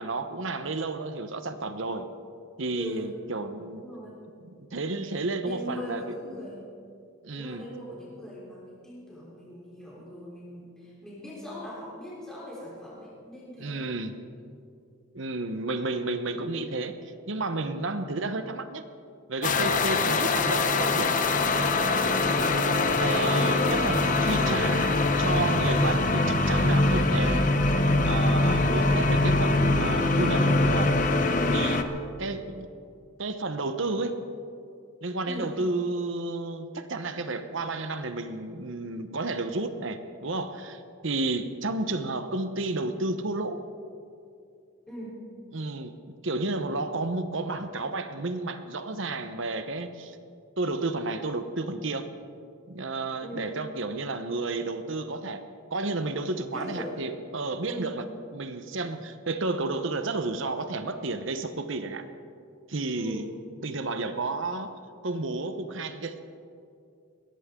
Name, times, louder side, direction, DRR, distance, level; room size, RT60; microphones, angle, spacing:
voice 1, 0.0-2.1 2.6-3.8 4.7-6.2 7.2-7.6 13.6-14.1 15.1-17.0 17.3-18.8 19.3-21.2 23.0-27.5 28.1-31.0 31.5-31.9 32.2-32.7 33.2-34.2 35.0-43.6 45.5-45.9 46.2-50.2 50.6-52.1 52.7-55.4 55.7-58.1 58.3-62.0 62.7-63.3 63.6-64.7 65.0-66.2, right 2 dB, 65° right, 9 dB, 0.9 m, -31 dB
voice 2, 2.7-3.1 3.7-4.2 5.4-6.6 7.3-13.8 20.0-20.2 35.3-35.5 44.9-45.2 53.2-53.5 56.5-57.0 57.7-57.9 63.0-63.3, equal, 5° left, -7 dB, 3.6 m, -40 dB
sound 1, 19.4-31.8, left 2 dB, 40° left, 0.9 m, -23 dB
21.5 x 17.5 x 3.7 m, 2.5 s
head